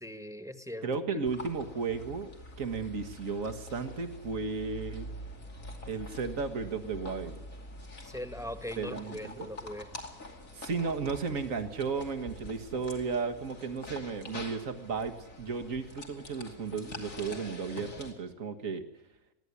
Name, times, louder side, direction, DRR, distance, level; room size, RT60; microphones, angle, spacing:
voice 1, 0.0-0.9 8.0-9.9, left 1 dB, ahead, 9 dB, 1.5 m, -40 dB
voice 2, 0.8-2.3 2.6-5.1 5.9-7.4 8.8-9.5 10.5-18.8, right 5 dB, 70° right, 7 dB, 2.0 m, -34 dB
sound 1, 1.2-18.1, left 1 dB, 70° left, 3.3 m, -45 dB
22.5 x 16.0 x 9.8 m, 0.96 s
omnidirectional pair, 1.4 m